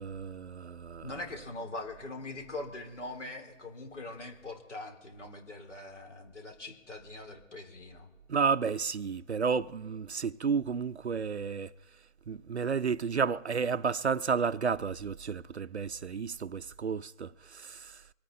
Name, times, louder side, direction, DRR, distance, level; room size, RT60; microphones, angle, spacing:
voice 1, 0.0-1.1 8.3-11.7 12.3-18.0, right 5 dB, 55° right, 0.5 m, -32 dB
voice 2, 1.0-8.1, left 2 dB, 60° left, 3.0 m, -42 dB
25.0 x 9.1 x 3.8 m
figure-of-eight pair, 165°, 39 cm